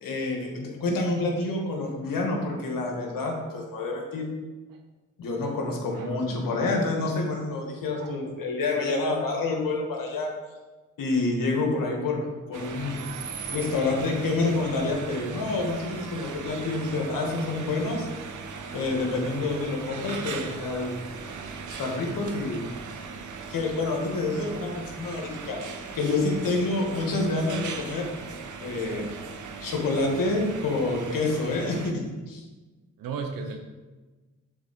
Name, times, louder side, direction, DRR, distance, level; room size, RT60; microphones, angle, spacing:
voice 1, 0.0-4.3 5.2-10.3 11.0-12.2 12.5-13.0 13.5-18.1 18.7-21.0 21.8-22.6 23.5-25.6 25.9-28.1 28.6-29.1 29.6-32.4, left 3 dB, 80° left, 1 dB, 1.5 m, -28 dB
sound 1, 12.5-31.9, right 5 dB, 65° right, 0.8 m, -39 dB
voice 2, 33.0-33.6, right 5 dB, 90° right, 5 dB, 0.7 m, -35 dB
7.2 x 4.1 x 5.1 m, 1.2 s
supercardioid pair, 50°, 33 cm